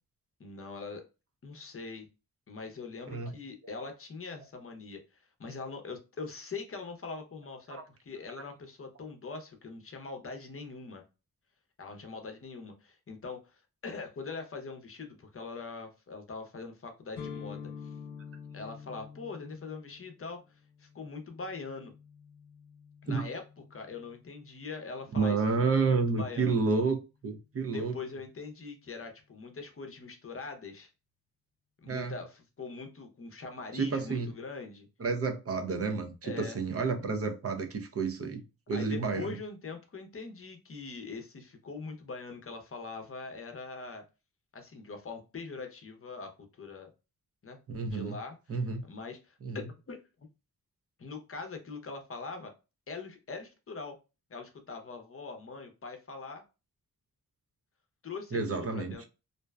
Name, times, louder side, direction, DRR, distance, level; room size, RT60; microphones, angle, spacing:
voice 1, 0.4-1.0 1.4-2.1 2.5-11.0 11.8-17.9 18.5-21.9 23.0-23.4 23.7-25.4 25.7-26.6 27.6-30.9 31.8-34.9 36.2-36.6 38.7-44.0 44.5-46.3 46.6-46.9 47.4-47.6 47.8-48.4 48.9-50.0 51.0-52.5 52.9-53.9 54.3-56.4 58.0-59.1, left 4 dB, 35° left, 0.7 m, -42 dB
sound 1, 17.1-24.9, left 6 dB, 85° left, 0.6 m, -48 dB
voice 2, 25.2-28.0 31.9-32.1 33.7-34.3 35.0-39.3 47.7-48.2 48.5-48.8 49.4-49.6 58.3-58.9, right 4 dB, 40° right, 0.6 m, -30 dB
2.5 x 2.1 x 2.2 m
cardioid pair, 70°, 36 cm